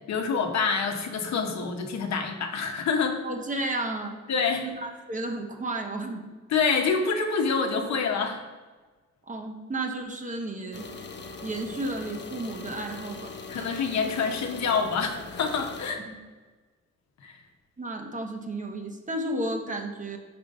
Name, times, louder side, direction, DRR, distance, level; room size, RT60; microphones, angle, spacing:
voice 1, 0.1-3.2 4.3-4.6 6.5-8.4 13.5-16.1 17.2-17.4, left 5 dB, 65° left, 4 dB, 0.9 m, -27 dB
voice 2, 3.2-4.2 4.6-6.2 9.3-10.9 11.4-13.7 16.1-16.2 17.8-20.2, right 2 dB, 25° right, 3 dB, 1.0 m, -33 dB
sound 1, 10.7-15.9, left 4 dB, 35° left, 0.7 m, -41 dB
5.0 x 4.4 x 5.2 m, 1.3 s
cardioid pair, 90°, 30 cm